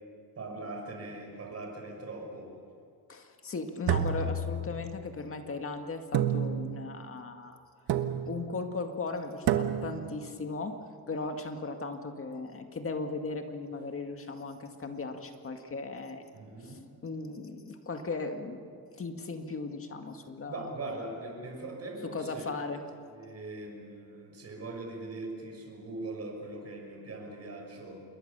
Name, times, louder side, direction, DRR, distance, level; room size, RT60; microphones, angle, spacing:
voice 1, 0.3-2.5 16.3-16.8 20.5-22.5 23.1-28.0, right 2 dB, 40° right, 1 dB, 6.3 m, -41 dB
voice 2, 3.1-7.6 8.3-10.8 11.1-16.2 16.6-18.6 19.0-20.6 22.0-22.8, left 3 dB, 35° left, 5 dB, 2.0 m, -37 dB
sound 1, 3.9-5.1 6.1-6.9 7.9-8.5 9.5-10.1, right 7 dB, 90° right, 1.3 m, -30 dB
28.0 x 21.5 x 6.8 m, 2.3 s
cardioid pair, 140°, 38 cm